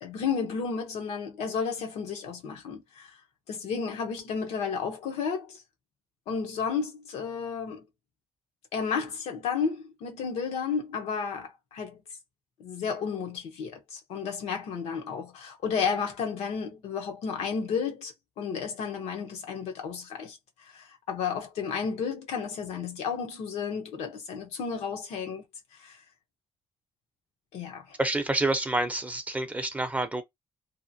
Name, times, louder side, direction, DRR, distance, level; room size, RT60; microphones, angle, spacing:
voice 1, 0.0-3.1 3.5-5.6 6.3-7.8 8.7-12.0 12.6-20.4 20.6-25.4 25.8-26.0 27.5-28.0, left 6 dB, 85° left, 0.7 m, -32 dB
voice 2, 28.0-30.2, right 2 dB, 15° right, 0.5 m, -28 dB
2.8 x 2.1 x 2.6 m
cardioid pair, 85°, 11 cm